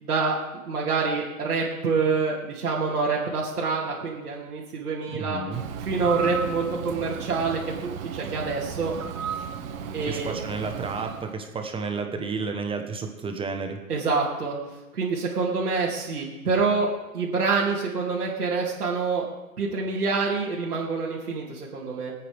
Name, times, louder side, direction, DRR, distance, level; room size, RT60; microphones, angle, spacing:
voice 1, 0.0-0.4 0.6-5.4 5.8-8.9 9.9-10.4 13.9-14.6 14.9-19.3 19.6-22.1, right 4 dB, 85° right, -7 dB, 2.7 m, -26 dB
voice 2, 5.1-5.6 10.1-13.8, right 4 dB, 10° right, 5 dB, 1.1 m, -31 dB
Bird, 5.5-11.3, right 6 dB, 60° right, 1.8 m, -34 dB
25.5 x 8.7 x 3.5 m, 1.1 s
hypercardioid pair, 125°, 45 cm